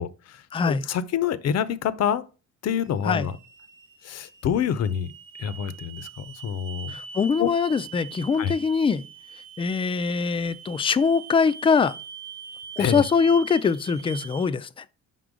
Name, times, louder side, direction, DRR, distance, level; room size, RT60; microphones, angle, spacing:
voice 1, 0.0-2.2 2.6-3.4 4.0-5.1 5.4-6.9 7.4-7.5 8.4-8.5 12.8-13.0, left 8 dB, 55° left, 0.6 m, -27 dB
voice 2, 0.5-0.8 3.0-3.3 6.9-9.0 9.6-12.0 12.8-14.8, left 5 dB, 20° left, 0.3 m, -23 dB
sound 1, 2.8-14.5, right 7 dB, 40° right, 1.0 m, -43 dB
5.5 x 3.8 x 4.9 m
cardioid pair, 90°, 30 cm